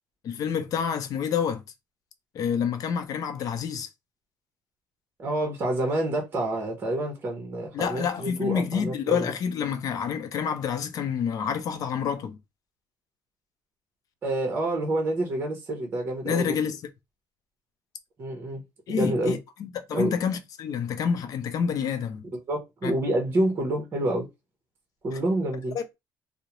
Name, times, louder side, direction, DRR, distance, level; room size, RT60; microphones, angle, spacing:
voice 1, 0.2-1.6 2.3-3.9 7.7-12.4 16.2-16.8 18.9-22.3 22.8-22.9 25.7-25.8, left 7 dB, 45° left, 0.5 m, -28 dB
voice 2, 5.2-9.3 14.2-16.5 18.2-18.6 18.9-19.4 19.9-20.1 22.5-24.3 25.0-25.8, right 1 dB, 25° right, 0.8 m, -28 dB
2.4 x 2.0 x 2.9 m
cardioid pair, 160°, 8 cm